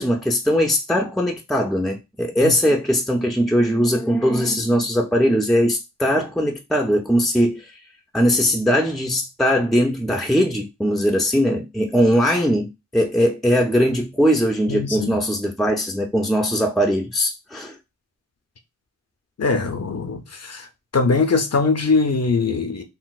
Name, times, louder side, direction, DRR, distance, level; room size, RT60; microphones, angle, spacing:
voice 1, 0.0-7.7 8.1-17.8, equal, ahead, 0.4 m, -20 dB
voice 2, 14.7-15.2 19.4-20.7 20.9-22.8, left 4 dB, 55° left, 0.6 m, -21 dB
3.8 x 2.0 x 2.4 m
wide cardioid pair, 40°, 30 cm